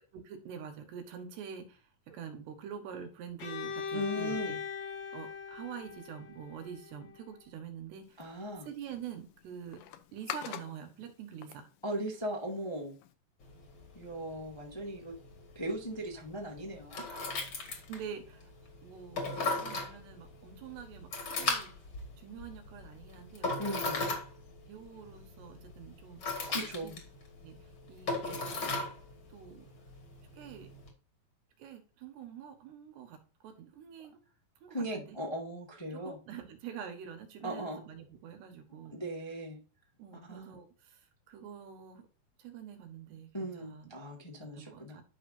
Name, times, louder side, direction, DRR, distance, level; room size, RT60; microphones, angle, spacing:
voice 1, 0.1-1.8 2.1-4.6 5.1-8.2 8.7-9.8 10.1-11.7 17.7-18.5 18.8-21.7 22.2-23.5 23.8-24.0 24.7-26.2 26.8-27.0 27.4-27.5 27.9-28.7 29.3-29.7 30.4-30.7 31.6-33.2 33.4-34.2 34.6-35.2 35.9-39.0 40.0-41.0 41.3-42.0 42.4-43.9 44.5-45.0, right 8 dB, 75° right, 5 dB, 3.6 m, -46 dB
Bowed string instrument, 3.4-7.2, left 6 dB, 55° left, 2.2 m, -40 dB
voice 2, 3.9-4.5 8.2-8.7 11.8-12.9 13.9-15.1 15.5-17.0 23.6-24.0 26.5-26.9 34.7-36.2 37.4-37.8 38.9-39.6 40.3-40.5 43.3-45.0, right 1 dB, 15° left, -1 dB, 0.9 m, -38 dB
sound 1, 8.0-13.1, left 11 dB, 75° left, 2.5 m, -47 dB
sound 2, 13.4-30.9, left 3 dB, 40° left, 2.1 m, -39 dB
11.5 x 5.8 x 2.8 m, 0.35 s
omnidirectional pair, 5.0 m